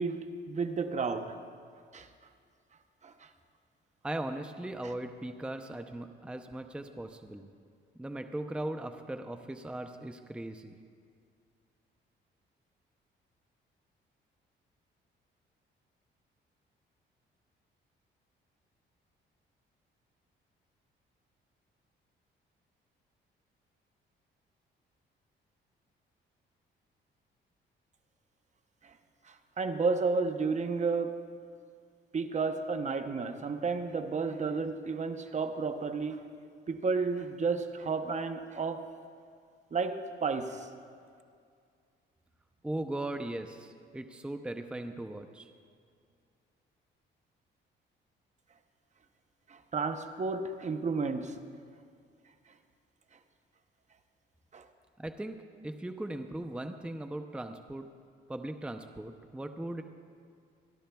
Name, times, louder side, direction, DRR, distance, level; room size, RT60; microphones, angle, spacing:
voice 1, 0.0-1.4 1.9-2.1 3.0-3.3 28.8-28.9 29.3-31.3 32.1-36.2 36.7-38.9 39.7-40.7 49.5-51.4 54.5-54.7, right 4 dB, 35° right, 8 dB, 0.8 m, -32 dB
voice 2, 4.0-7.5 8.0-10.8 42.6-45.5 55.0-55.4 55.6-57.8 58.3-59.8, right 1 dB, 5° right, 7 dB, 0.6 m, -38 dB
26.5 x 11.5 x 2.3 m, 2.2 s
cardioid pair, 90°, 20 cm